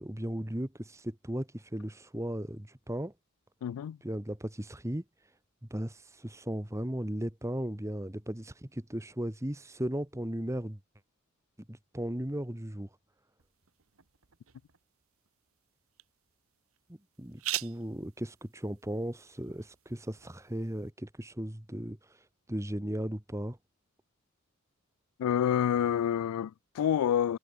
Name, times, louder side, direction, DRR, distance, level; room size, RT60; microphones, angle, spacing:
voice 1, 0.0-3.1 4.0-5.0 5.7-10.8 11.7-12.9 17.2-22.0 22.5-23.6, right 1 dB, 15° right, 1.4 m, -36 dB
voice 2, 3.6-4.0 25.2-27.4, left 9 dB, 90° left, 0.3 m, -28 dB
sound 1, 13.4-20.9, right 15 dB, 70° right, 1.2 m, -45 dB
head